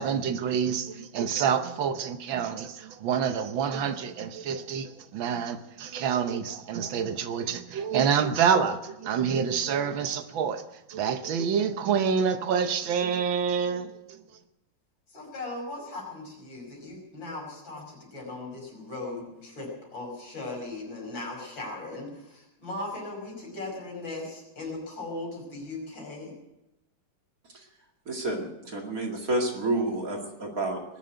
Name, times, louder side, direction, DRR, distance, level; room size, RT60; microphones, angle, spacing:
voice 1, 0.0-10.6 10.9-14.2, right 7 dB, 80° right, 1.7 m, -27 dB
voice 2, 15.1-26.3, left 2 dB, 75° left, 6.2 m, -38 dB
voice 3, 28.1-30.8, right 2 dB, 45° right, 2.7 m, -30 dB
20.5 x 7.4 x 9.1 m
omnidirectional pair, 2.1 m